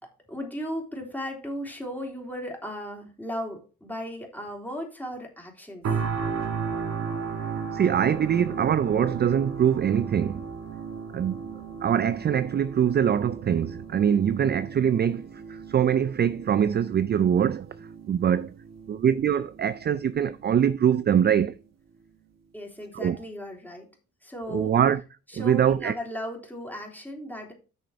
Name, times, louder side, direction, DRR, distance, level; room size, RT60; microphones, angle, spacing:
voice 1, 0.0-5.9 22.5-23.9 24.2-24.8 25.3-27.5, equal, 5° left, 3.5 m, -36 dB
sound 1, 5.8-20.9 21.3-21.5, right 6 dB, 60° right, 2.0 m, -36 dB
voice 2, 7.7-10.5 11.1-11.4 11.8-17.7 18.1-18.5 18.9-21.5 23.0-23.2 24.5-25.0 25.4-25.9, right 8 dB, 35° right, 0.4 m, -23 dB
8.7 x 6.5 x 4.7 m
cardioid pair, 90°, 30 cm